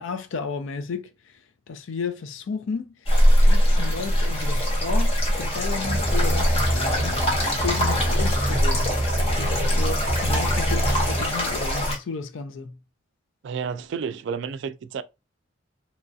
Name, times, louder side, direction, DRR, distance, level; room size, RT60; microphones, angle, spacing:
voice 1, 0.0-1.4 1.7-7.2 7.6-9.0 9.4-12.8, left 5 dB, 75° left, 0.4 m, -33 dB
sound 1, 3.1-12.0, equal, 30° left, 0.9 m, -22 dB
sound 2, 5.8-11.2, right 1 dB, 5° right, 0.8 m, -27 dB
voice 2, 13.4-15.0, right 6 dB, 65° right, 0.3 m, -31 dB
3.0 x 2.3 x 2.6 m
head